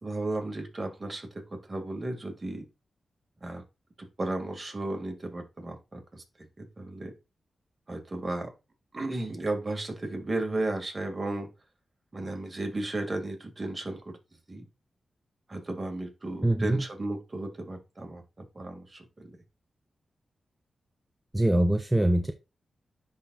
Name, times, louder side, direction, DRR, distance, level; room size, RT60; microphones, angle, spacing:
voice 1, 0.0-2.6 3.4-3.6 4.2-6.2 6.6-7.1 7.9-8.5 8.9-11.5 12.1-14.2 14.5-14.6 15.5-19.3, right 2 dB, 35° right, 2.1 m, -34 dB
voice 2, 16.4-16.8 21.3-22.3, right 1 dB, 10° right, 0.6 m, -23 dB
10.0 x 4.0 x 2.4 m
cardioid pair, 65°, 0 cm